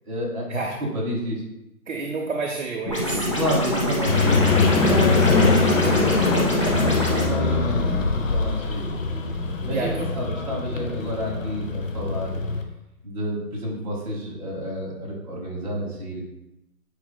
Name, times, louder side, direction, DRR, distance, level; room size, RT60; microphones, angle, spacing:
voice 1, 0.1-1.4 3.4-8.9 9.6-12.3 13.0-16.2, equal, 25° right, -6 dB, 2.1 m, -30 dB
voice 2, 1.9-3.3 6.6-7.0 9.7-10.4, right 3 dB, 50° right, 0 dB, 0.8 m, -30 dB
sound 1, 2.9-7.3, left 1 dB, 20° left, 0.7 m, -25 dB
sound 2, 4.1-12.6, left 3 dB, 60° left, 0.8 m, -22 dB
9.6 x 4.9 x 2.2 m, 0.90 s
hypercardioid pair, 165°, 46 cm